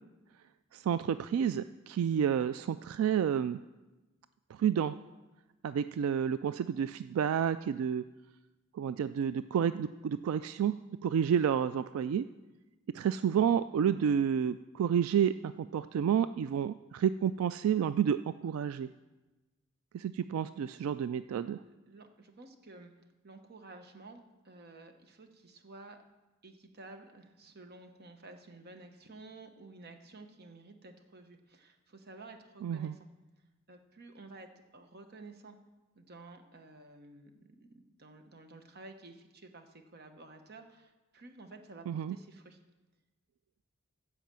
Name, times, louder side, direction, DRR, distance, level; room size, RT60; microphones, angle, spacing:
voice 1, 0.7-3.6 4.5-5.0 5.6-8.0 8.7-10.7 11.0-12.2 12.9-18.9 19.9-21.6 32.6-32.9 41.9-42.2, right 8 dB, 85° right, 14 dB, 0.3 m, -30 dB
voice 2, 21.6-22.9 23.2-26.0 26.4-33.1 33.7-35.6 35.9-42.6, right 2 dB, 50° right, 6 dB, 1.0 m, -52 dB
14.5 x 5.0 x 7.5 m, 1.1 s
head